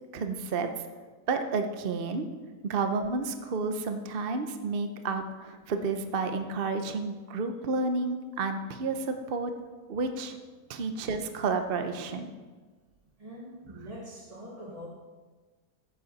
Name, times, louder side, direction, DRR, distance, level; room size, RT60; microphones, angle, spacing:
voice 1, 0.1-0.7 1.3-2.3 2.6-9.5 9.9-10.4 10.7-12.3, right 4 dB, 45° right, 6 dB, 0.7 m, -31 dB
voice 2, 13.2-14.9, equal, 25° right, -2 dB, 1.1 m, -44 dB
14.5 x 8.7 x 4.1 m, 1.3 s
omnidirectional pair, 1.9 m